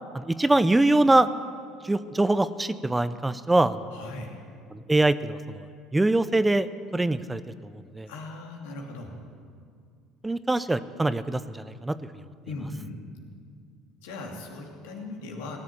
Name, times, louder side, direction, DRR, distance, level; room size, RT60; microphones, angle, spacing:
voice 1, 0.1-1.3 1.8-3.9 4.7-5.7 5.9-6.7 6.9-7.4 7.7-8.1 10.2-12.0, right 2 dB, 10° right, 14 dB, 0.5 m, -23 dB
voice 2, 3.9-4.4 8.1-9.2 12.5-13.0 14.0-15.6, left 2 dB, 85° left, 1 dB, 2.5 m, -38 dB
17.5 x 7.4 x 9.8 m, 2.2 s
supercardioid pair, 90°, 0 cm